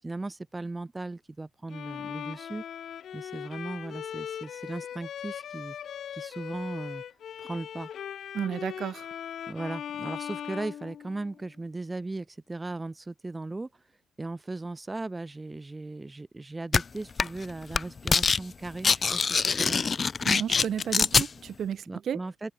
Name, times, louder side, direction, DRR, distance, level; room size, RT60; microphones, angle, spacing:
voice 1, 0.0-2.6 3.1-5.8 6.1-7.0 7.4-7.9 9.5-13.8 14.2-19.9 21.9-22.5, right 2 dB, 20° right, 5.5 m, -37 dB
Bowed string instrument, 1.7-11.5, left 9 dB, 65° left, 2.0 m, -39 dB
voice 2, 8.3-9.1 20.2-22.2, right 8 dB, 60° right, 1.8 m, -32 dB
sound 1, 16.7-16.8 17.2-17.4 17.7-18.4 18.7-21.3, left 5 dB, 40° left, 0.3 m, -24 dB
cardioid pair, 90°, 0 cm